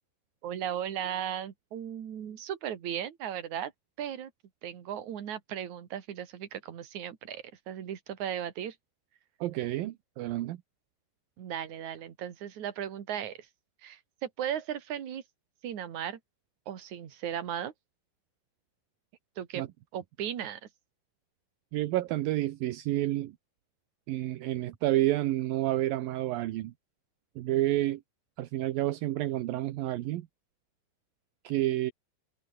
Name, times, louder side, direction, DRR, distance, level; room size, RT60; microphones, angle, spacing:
voice 1, 0.4-3.7 4.0-4.3 4.6-8.8 11.4-13.5 13.8-15.2 15.6-16.2 16.7-17.7 19.4-19.6 19.9-20.7, right 10 dB, 50° right, 3.1 m, -36 dB
voice 2, 9.4-10.6 19.6-19.7 21.7-23.4 24.1-26.7 27.4-28.0 28.4-30.3 31.4-31.9, right 15 dB, 70° right, 2.4 m, -29 dB
open air
omnidirectional pair, 5.0 m